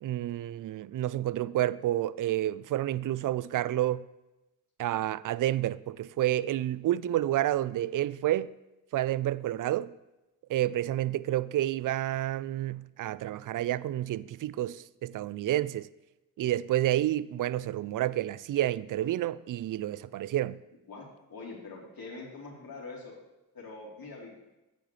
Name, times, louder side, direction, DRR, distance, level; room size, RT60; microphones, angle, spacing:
voice 1, 0.0-4.1 4.8-8.5 8.9-9.9 10.5-15.9 16.4-20.6, right 13 dB, 45° right, 0.4 m, -29 dB
voice 2, 20.9-23.2 23.5-24.3, left 3 dB, 50° left, 3.5 m, -44 dB
9.7 x 9.5 x 3.2 m
supercardioid pair, 45°, 44 cm